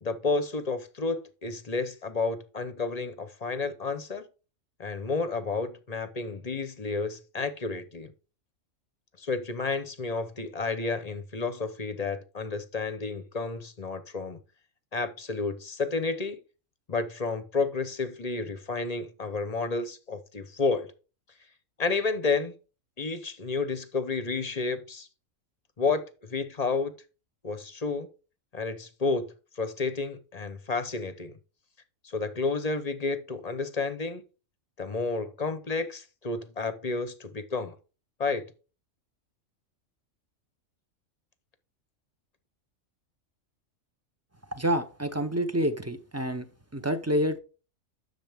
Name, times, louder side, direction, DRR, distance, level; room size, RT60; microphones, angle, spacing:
voice 1, 0.0-4.3 4.8-8.1 9.2-14.4 14.9-16.4 16.9-20.9 21.8-22.5 23.0-25.1 25.8-26.0 26.3-26.9 27.4-28.1 28.5-31.3 32.0-34.2 34.8-37.7 38.2-38.5, left 4 dB, 35° left, 0.7 m, -31 dB
voice 2, 44.6-46.5 46.7-47.4, equal, 20° right, 0.5 m, -28 dB
10.5 x 6.7 x 3.5 m
omnidirectional pair, 1.4 m